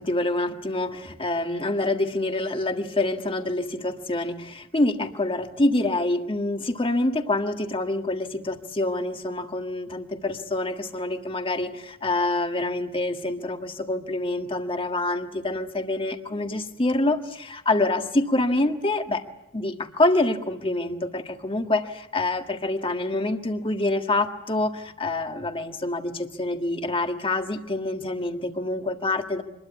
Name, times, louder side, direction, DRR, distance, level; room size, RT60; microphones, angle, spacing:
voice 1, 0.0-19.2 19.5-29.4, left 2 dB, 25° left, 6 dB, 1.7 m, -26 dB
25.5 x 21.5 x 8.1 m, 0.89 s
head